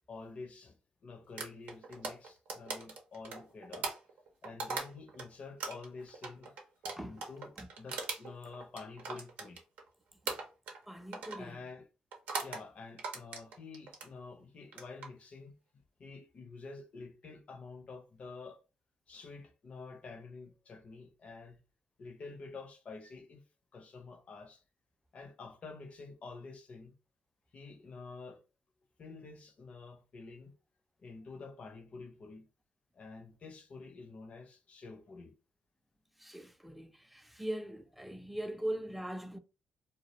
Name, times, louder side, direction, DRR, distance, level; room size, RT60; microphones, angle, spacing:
voice 1, 0.1-0.8 1.0-3.9 4.4-6.5 7.0-9.6 11.4-11.9 12.4-15.6 16.0-18.6 19.1-21.6 22.0-23.4 23.7-24.6 25.1-27.0 27.5-28.4 29.0-30.5 31.0-32.5 32.9-35.4, left 4 dB, 55° left, 0.6 m, -49 dB
sound 1, 1.4-5.3 5.6-9.9 10.3-10.8 11.1-11.4 12.1-12.6 13.0-14.1 14.6-15.1, right 4 dB, 80° right, 0.6 m, -40 dB
voice 2, 10.9-11.6 36.2-39.4, right 1 dB, 5° right, 0.4 m, -41 dB
2.3 x 2.0 x 2.8 m
supercardioid pair, 60°, 3 cm